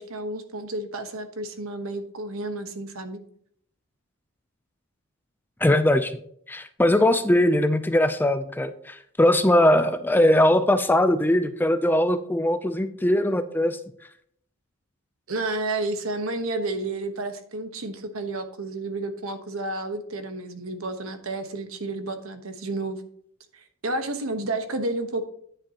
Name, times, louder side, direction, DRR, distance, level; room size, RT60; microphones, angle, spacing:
voice 1, 0.0-3.2 15.3-23.0 23.5-25.2, right 2 dB, 70° right, 7 dB, 1.2 m, -31 dB
voice 2, 5.6-6.2 6.5-13.8, left 1 dB, 10° left, 10 dB, 0.4 m, -20 dB
9.9 x 9.0 x 2.9 m, 0.65 s
head